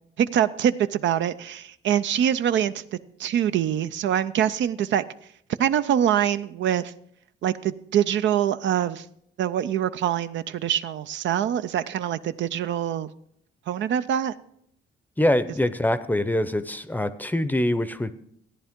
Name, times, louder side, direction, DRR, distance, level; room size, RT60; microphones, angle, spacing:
voice 1, 0.2-2.8 3.2-5.0 5.6-6.9 7.4-9.1 9.4-13.1 13.7-14.3, right 10 dB, 70° right, 12 dB, 0.5 m, -24 dB
voice 2, 15.2-18.1, left 1 dB, 10° left, 13 dB, 0.6 m, -24 dB
14.0 x 10.0 x 3.6 m, 0.70 s
cardioid pair, 90°, 20 cm